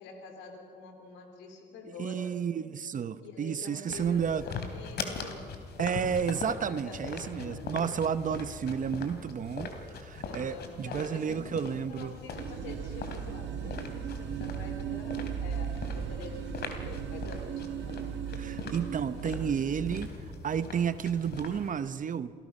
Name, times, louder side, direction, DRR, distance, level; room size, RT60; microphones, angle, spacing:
voice 1, 0.0-2.6 3.2-5.5 6.7-7.7 10.2-18.8, left 3 dB, 90° left, 4 dB, 3.2 m, -47 dB
voice 2, 1.9-4.5 5.8-12.1 18.4-20.1 20.4-22.3, right 7 dB, 45° right, 13 dB, 0.9 m, -31 dB
sound 1, 3.9-21.7, left 4 dB, 60° left, 3.0 m, -41 dB
sound 2, 12.4-20.1, right 8 dB, 75° right, 1.6 m, -37 dB
28.0 x 17.5 x 5.5 m, 2.1 s
supercardioid pair, 80°, 19 cm